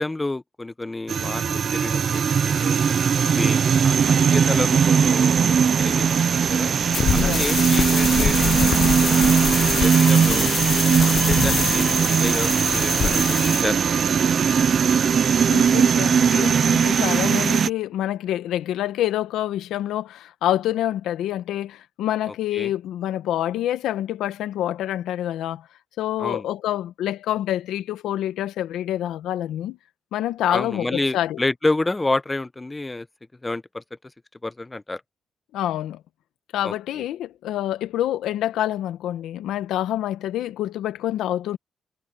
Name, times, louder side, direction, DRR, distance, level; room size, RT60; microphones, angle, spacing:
voice 1, 0.0-2.8 3.3-6.7 7.1-8.8 9.1-10.5 11.0-13.9 22.3-22.7 26.2-26.5 30.5-33.1 33.4-33.8 34.4-35.0 36.6-37.0, left 2 dB, 15° left, 0.8 m, -29 dB
sound 1, 1.1-17.7, right 7 dB, 50° right, 0.6 m, -19 dB
sound 2, 6.9-13.6, left 7 dB, 55° left, 0.5 m, -25 dB
voice 2, 15.5-25.6 26.0-29.8 30.1-31.4 35.5-36.0 36.5-41.6, left 12 dB, 85° left, 1.1 m, -27 dB
cardioid pair, 90°, 0 cm